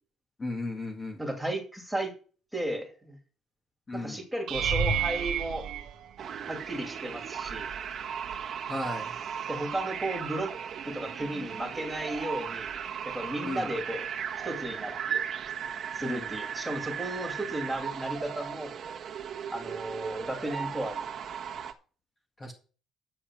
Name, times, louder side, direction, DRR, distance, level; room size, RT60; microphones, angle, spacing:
voice 1, 0.4-1.2 3.9-4.2 8.7-9.1 13.4-13.7 16.0-16.3 22.4-22.5, left 2 dB, 20° left, 1 dB, 1.9 m, -35 dB
voice 2, 1.2-2.1 2.5-3.2 3.9-5.7 6.4-7.7 9.5-10.5 10.8-12.7 13.0-14.1 14.4-15.2 15.9-18.7 19.5-21.0, right 1 dB, 5° right, 2 dB, 2.7 m, -34 dB
sound 1, 4.5-6.8 7.4-7.9 8.3-8.4 12.8-12.9, right 6 dB, 70° right, 1.5 m, -31 dB
sound 2, 6.2-21.7, right 8 dB, 50° right, 1.4 m, -36 dB
10.0 x 7.2 x 6.1 m, 0.39 s
cardioid pair, 130°, 0 cm